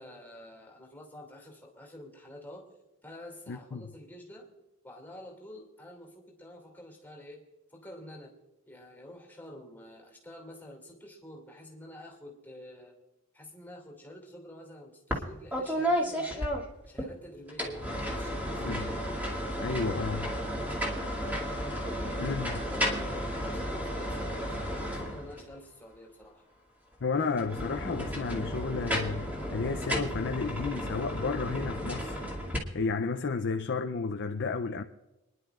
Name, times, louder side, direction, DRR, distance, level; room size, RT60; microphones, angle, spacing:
voice 1, 0.0-2.7 3.0-4.5 4.8-7.4 7.7-8.3 8.7-13.0 13.3-16.5 16.9-18.9 19.4-20.4 21.9-22.3 22.6-26.4, left 1 dB, 10° left, 2.7 m, -48 dB
voice 2, 3.5-3.8 18.6-18.8 19.6-20.3 22.2-22.6 27.0-32.2 32.7-34.8, left 4 dB, 55° left, 0.5 m, -32 dB
sound 1, 15.1-15.3 15.5-17.1 17.5-25.5 27.3-32.6, equal, 10° right, 2.4 m, -33 dB
26.5 x 11.0 x 2.4 m
head